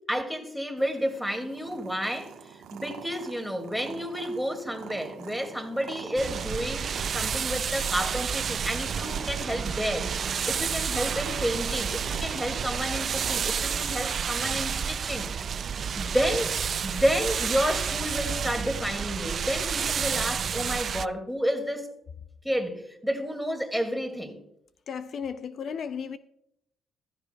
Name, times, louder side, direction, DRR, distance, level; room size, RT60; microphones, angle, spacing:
voice 1, 0.1-2.3 2.7-6.9 7.1-10.1 10.5-15.3 15.9-21.9 22.4-24.4, equal, ahead, 2.2 m, -30 dB
Purr, 0.8-14.7, right 7 dB, 90° right, 1.2 m, -44 dB
sound 1, 6.2-21.1, right 7 dB, 50° right, 0.3 m, -30 dB
voice 2, 24.9-26.2, left 6 dB, 60° left, 0.4 m, -34 dB
15.0 x 13.5 x 2.3 m
cardioid pair, 90°, 0 cm